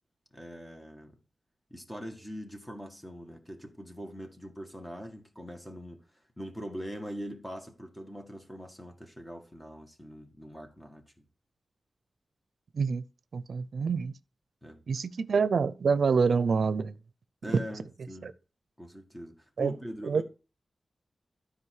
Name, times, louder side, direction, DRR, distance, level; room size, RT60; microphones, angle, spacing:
voice 1, 0.3-1.2 1.7-11.3 14.6-14.8 17.4-18.3 18.8-20.2, equal, 10° left, 1.9 m, -42 dB
voice 2, 13.3-14.1 14.9-16.9 17.5-17.6 18.2-18.3 19.6-19.7 20.0-20.2, right 5 dB, 75° right, 0.5 m, -26 dB
12.5 x 5.0 x 4.9 m
wide cardioid pair, 110°, 0 cm